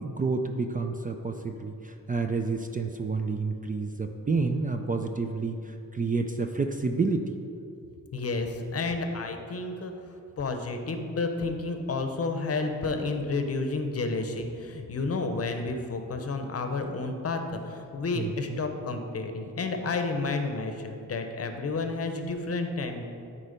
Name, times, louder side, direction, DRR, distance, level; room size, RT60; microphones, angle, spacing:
voice 1, 0.0-7.3 18.1-18.6, right 4 dB, 25° right, 5 dB, 0.4 m, -29 dB
voice 2, 8.1-9.9 10.4-23.0, left 3 dB, 45° left, 6 dB, 0.8 m, -31 dB
12.5 x 4.4 x 5.2 m, 2.6 s
wide cardioid pair, 140°, 34 cm